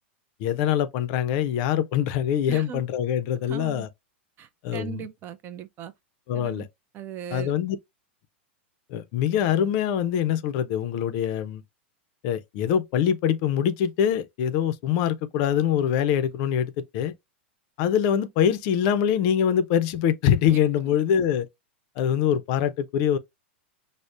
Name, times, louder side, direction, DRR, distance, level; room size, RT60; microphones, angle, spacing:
voice 1, 0.4-3.9 4.6-5.1 6.3-6.7 7.3-7.8 8.9-11.6 12.2-17.1 17.8-21.5 22.0-23.2, left 9 dB, 50° left, 0.4 m, -24 dB
voice 2, 2.5-2.8 3.5-3.9 4.4-5.9 6.3-6.7 6.9-7.5, right 9 dB, 35° right, 0.4 m, -38 dB
5.1 x 2.0 x 2.4 m
hypercardioid pair, 105°, 6 cm